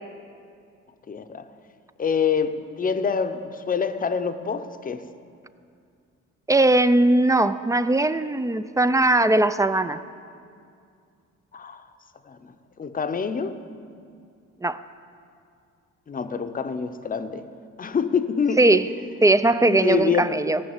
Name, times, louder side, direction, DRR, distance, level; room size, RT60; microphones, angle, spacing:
voice 1, 1.1-1.4 2.0-5.0 11.5-11.9 12.3-12.5 12.8-13.6 16.1-17.5 17.8-19.1 19.6-20.4, left 6 dB, 30° left, 10 dB, 0.7 m, -26 dB
voice 2, 6.5-10.0 14.6-14.8 18.6-18.9 19.2-20.6, right 2 dB, 10° right, 13 dB, 0.3 m, -19 dB
16.0 x 6.3 x 7.9 m, 2.3 s
cardioid pair, 90°, 30 cm